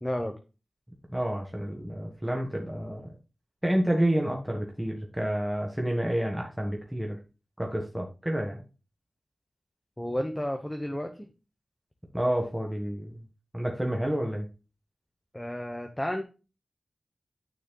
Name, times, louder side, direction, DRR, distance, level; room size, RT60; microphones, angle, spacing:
voice 1, 0.0-0.3 10.0-11.3 15.3-16.2, left 1 dB, 10° left, 4 dB, 1.0 m, -32 dB
voice 2, 1.1-3.1 3.6-7.2 7.6-8.6 12.1-13.1 13.5-14.5, right 1 dB, 5° right, 0 dB, 1.5 m, -29 dB
9.5 x 6.5 x 2.2 m, 0.31 s
wide cardioid pair, 85°, 0 cm